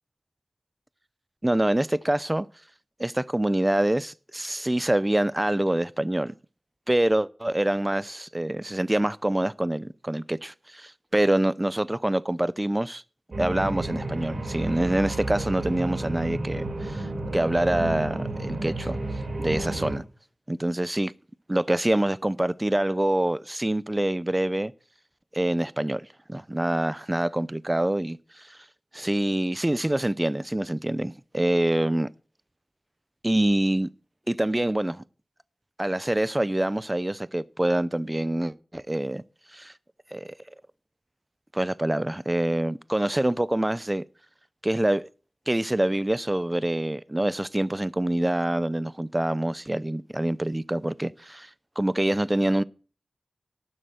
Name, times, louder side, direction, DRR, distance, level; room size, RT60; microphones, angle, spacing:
voice 1, 1.4-2.5 3.0-6.3 6.9-13.0 13.4-19.0 19.4-20.0 20.5-21.1 21.5-24.7 25.3-26.0 26.3-28.6 28.9-32.1 33.2-33.9 34.3-35.0 35.8-39.2 39.5-39.7 40.1-40.4 41.5-44.0 44.6-45.1 45.5-51.5 51.8-52.6, right 1 dB, 20° right, 0.5 m, -25 dB
sound 1, 13.3-20.0, right 2 dB, 65° right, 4.5 m, -31 dB
12.0 x 7.7 x 7.8 m
wide cardioid pair, 80°, 0 cm